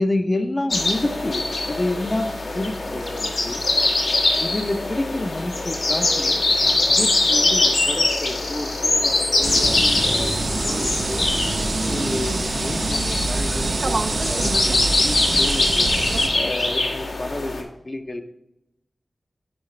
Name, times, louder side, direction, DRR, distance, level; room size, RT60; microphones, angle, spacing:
voice 1, 0.0-3.6 4.4-11.2 11.9-15.9 16.3-18.2, left 1 dB, 30° left, 6 dB, 0.6 m, -29 dB
sound 1, 0.7-17.6, left 2 dB, 85° left, 1.4 m, -23 dB
sound 2, 9.4-16.3, right 3 dB, 75° right, 0.6 m, -25 dB
9.6 x 4.9 x 3.2 m, 0.89 s
wide cardioid pair, 80°, 0 cm